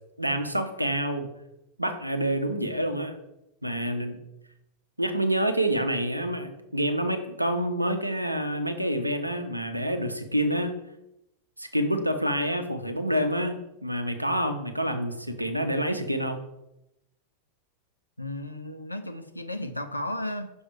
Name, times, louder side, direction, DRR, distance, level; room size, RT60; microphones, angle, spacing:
voice 1, 0.2-1.3 1.8-3.1 3.6-4.2 5.0-10.8 11.6-16.5, equal, 90° right, 7 dB, 0.7 m, -27 dB
voice 2, 18.2-20.5, left 1 dB, 85° left, 7 dB, 0.6 m, -34 dB
6.3 x 5.3 x 4.7 m, 0.88 s
figure-of-eight pair, 90°, 0 cm